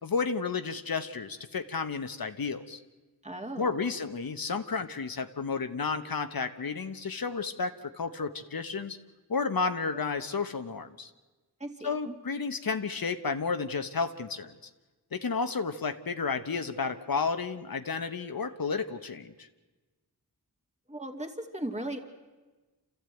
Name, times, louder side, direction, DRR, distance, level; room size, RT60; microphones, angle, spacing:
voice 1, 0.0-2.8 3.6-9.0 9.3-11.1 11.8-14.7 15.1-19.5, left 5 dB, 60° left, 9 dB, 1.1 m, -32 dB
voice 2, 3.2-3.9 11.6-12.2 20.9-22.0, right 1 dB, 15° right, 3 dB, 2.5 m, -37 dB
27.5 x 14.5 x 9.1 m, 1.2 s
wide cardioid pair, 90°, 39 cm